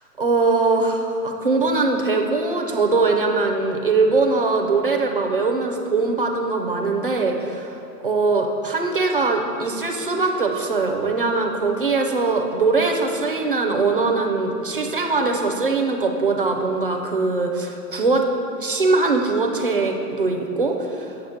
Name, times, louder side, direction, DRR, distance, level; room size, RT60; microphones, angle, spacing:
voice 1, 0.2-18.2 18.6-21.3, right 3 dB, 35° right, 2 dB, 0.5 m, -21 dB
7.9 x 6.7 x 5.5 m, 2.8 s
hypercardioid pair, 175°, 49 cm